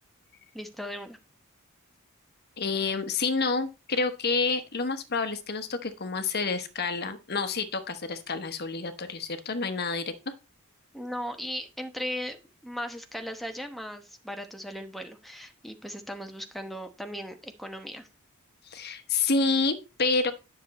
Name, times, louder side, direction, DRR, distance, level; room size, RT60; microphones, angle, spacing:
voice 1, 0.5-1.2 10.9-12.4 12.6-18.1, equal, ahead, 5 dB, 1.0 m, -37 dB
voice 2, 2.6-10.1 18.7-20.3, left 4 dB, 50° left, 9 dB, 1.1 m, -28 dB
10.5 x 6.8 x 4.2 m, 0.29 s
head